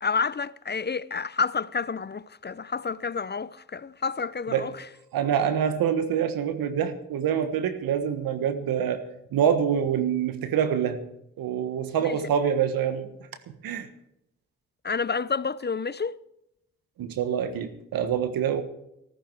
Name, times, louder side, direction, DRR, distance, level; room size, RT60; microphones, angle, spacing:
voice 1, 0.0-4.8 12.0-12.2 14.8-16.1, left 5 dB, 30° left, 0.6 m, -29 dB
voice 2, 5.1-9.0 9.3-11.0 11.4-13.1 13.6-13.9 17.0-18.6, right 8 dB, 80° right, 1.5 m, -26 dB
14.5 x 14.0 x 4.6 m
hypercardioid pair, 40°, 35 cm